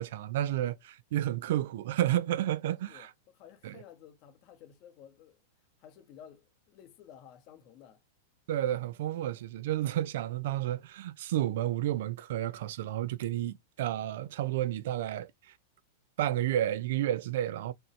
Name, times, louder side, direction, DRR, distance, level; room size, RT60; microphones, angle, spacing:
voice 1, 0.0-3.1 3.6-3.7 8.5-15.5 16.2-17.7, right 12 dB, 65° right, 0.5 m, -31 dB
voice 2, 2.9-5.4 5.8-8.0, left 9 dB, 45° left, 1.2 m, -54 dB
3.4 x 2.7 x 4.4 m
hypercardioid pair, 110°, 0 cm